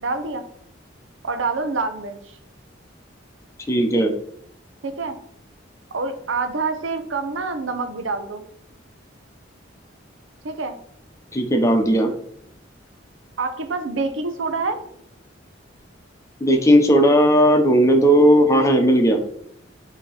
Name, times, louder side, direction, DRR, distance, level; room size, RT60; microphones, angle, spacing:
voice 1, 0.0-0.4 1.2-2.4 4.8-5.2 5.9-8.4 10.4-10.8 13.4-14.8, right 3 dB, 90° right, 7 dB, 0.7 m, -26 dB
voice 2, 3.7-4.1 11.3-12.1 16.4-19.2, equal, 15° left, 4 dB, 0.9 m, -16 dB
6.5 x 3.0 x 5.7 m, 0.67 s
head